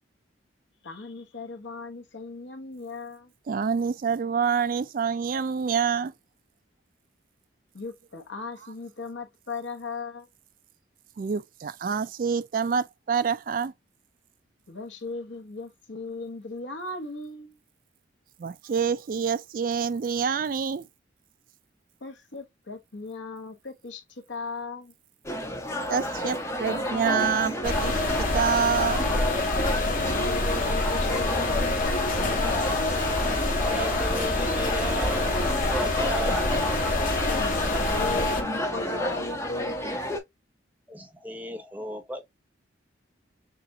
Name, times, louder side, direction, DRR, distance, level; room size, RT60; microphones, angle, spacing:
voice 1, 0.8-3.3 7.7-10.3 14.7-17.6 22.0-24.9 29.9-32.8 37.3-40.0, left 3 dB, 75° left, 1.2 m, -37 dB
voice 2, 3.5-6.1 11.2-13.7 18.4-20.9 25.9-29.1, right 6 dB, 45° right, 0.3 m, -27 dB
sound 1, 25.2-40.2, left 1 dB, 15° left, 1.0 m, -31 dB
sound 2, 27.6-38.4, left 2 dB, 45° left, 1.2 m, -26 dB
voice 3, 33.6-36.4 40.9-42.3, equal, 10° right, 0.8 m, -35 dB
6.8 x 2.5 x 2.8 m
head